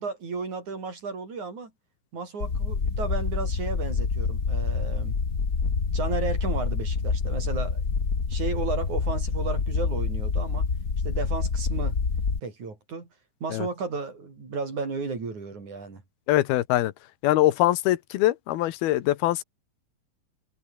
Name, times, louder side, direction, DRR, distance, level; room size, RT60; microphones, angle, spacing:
voice 1, 0.0-1.7 2.1-5.2 5.9-7.8 8.3-10.7 11.0-12.0 12.4-13.1 13.4-16.0, right 4 dB, 50° right, 6.9 m, -33 dB
sound 1, 2.4-12.4, left 5 dB, 30° left, 1.8 m, -27 dB
voice 2, 16.3-16.9 17.2-19.4, left 15 dB, 85° left, 3.1 m, -23 dB
omnidirectional pair, 4.3 m